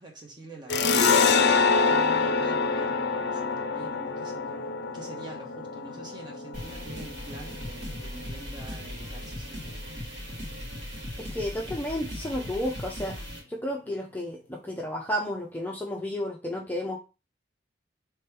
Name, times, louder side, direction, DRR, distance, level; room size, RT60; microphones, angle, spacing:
voice 1, 0.0-1.5 1.8-9.8, right 2 dB, 25° right, 1.1 m, -45 dB
sound 1, 0.7-7.9, left 4 dB, 70° left, 0.5 m, -25 dB
sound 2, 6.5-13.4, left 1 dB, 85° right, 2.3 m, -38 dB
voice 2, 11.2-13.2 13.5-17.0, left 1 dB, 10° left, 0.5 m, -32 dB
3.4 x 3.1 x 4.7 m
head